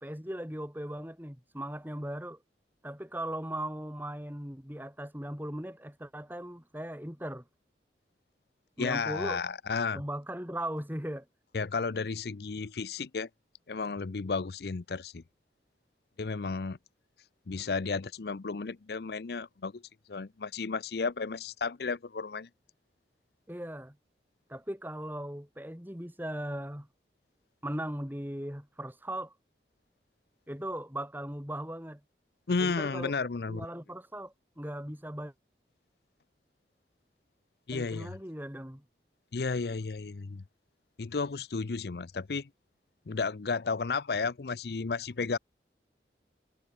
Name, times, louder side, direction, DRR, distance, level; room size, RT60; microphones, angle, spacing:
voice 1, 0.0-2.4 2.8-7.4 8.8-9.4 9.9-11.2 23.5-24.0 24.5-26.9 27.6-29.3 30.5-32.0 32.6-33.1 33.5-35.3 37.7-38.8, right 1 dB, 10° right, 2.9 m, -38 dB
voice 2, 8.8-10.0 11.5-13.3 13.7-15.2 16.2-16.8 17.5-19.8 20.1-22.5 32.5-33.7 37.7-38.1 39.3-40.4 41.0-42.5 43.1-45.4, left 4 dB, 65° left, 0.6 m, -33 dB
head